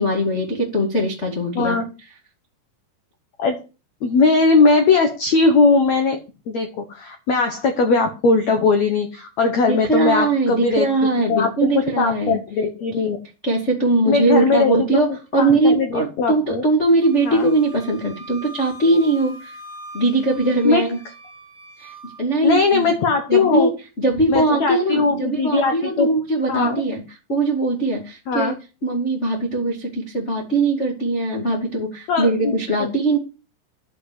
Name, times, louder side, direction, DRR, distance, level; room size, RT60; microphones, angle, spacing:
voice 1, 0.0-1.8 9.7-12.4 13.0-13.1 13.4-19.5 19.9-21.0 21.8-21.9 22.2-22.9 23.3-23.7 24.0-27.0 27.3-28.5 28.8-33.2, right 2 dB, 40° left, -1 dB, 0.9 m, -20 dB
voice 2, 4.0-10.9 11.3-13.2 14.1-15.0 15.4-16.6 17.2-17.5 20.6-20.9 22.4-23.7 24.3-26.1 26.5-26.8 28.3-28.5 32.1-32.6, left 4 dB, 80° left, 5 dB, 1.5 m, -19 dB
Wind instrument woodwind instrument, 17.0-22.2, right 1 dB, 25° right, 1.2 m, -41 dB
11.0 x 5.5 x 8.2 m, 0.32 s
omnidirectional pair, 5.1 m